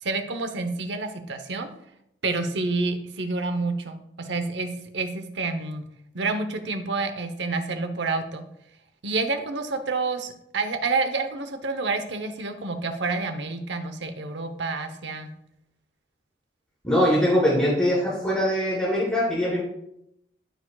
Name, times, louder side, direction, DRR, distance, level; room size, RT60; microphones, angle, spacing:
voice 1, 0.0-1.7 2.2-5.8 6.1-8.4 9.0-15.3, right 3 dB, 85° right, 7 dB, 0.9 m, -28 dB
voice 2, 16.8-19.6, equal, 10° left, -8 dB, 2.9 m, -22 dB
13.5 x 4.9 x 2.3 m, 0.78 s
head